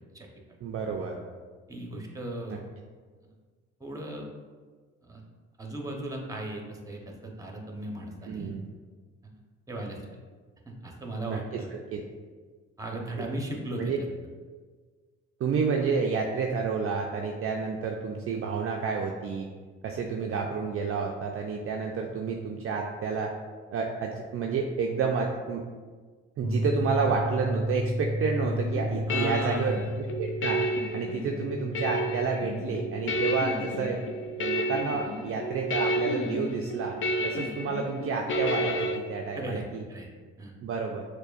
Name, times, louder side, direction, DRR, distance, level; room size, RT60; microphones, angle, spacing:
voice 1, 0.6-1.2 2.5-2.6 8.3-8.6 11.3-12.0 13.8-14.0 15.4-19.5 19.8-23.3 23.7-25.6 26.4-30.7 30.9-34.0 34.4-37.0 37.2-39.8 40.6-41.1, right 5 dB, 45° right, 1 dB, 0.4 m, -30 dB
voice 2, 1.7-2.6 3.8-4.2 5.0-5.2 5.6-8.5 9.2-9.3 9.7-10.0 10.7-11.7 12.8-13.9 29.1-29.9 39.3-39.6 39.9-40.1 40.4-40.5, right 1 dB, 10° right, 1 dB, 0.8 m, -36 dB
sound 1, 26.4-37.6, equal, 20° left, 0.9 m, -34 dB
sound 2, 28.4-39.0, equal, 40° left, 0.5 m, -31 dB
6.4 x 2.2 x 2.4 m, 1.5 s
hypercardioid pair, 60°, 33 cm